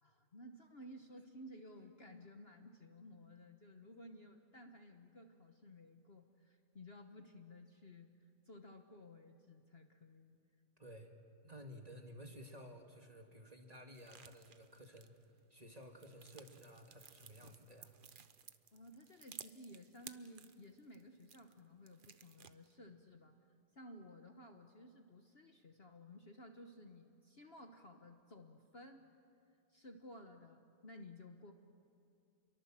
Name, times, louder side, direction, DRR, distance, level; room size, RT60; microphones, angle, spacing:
voice 1, 0.0-10.4 18.7-23.4 23.7-29.1 29.7-31.5, left 1 dB, 40° left, 5 dB, 1.3 m, -56 dB
voice 2, 10.8-11.1 11.4-15.1 15.5-17.9, equal, 25° right, 3 dB, 2.1 m, -54 dB
sound 1, 13.9-15.4 15.8-21.6 21.9-22.7, right 6 dB, 40° right, 0.8 m, -57 dB
30.0 x 23.0 x 7.5 m, 2.5 s
omnidirectional pair, 1.7 m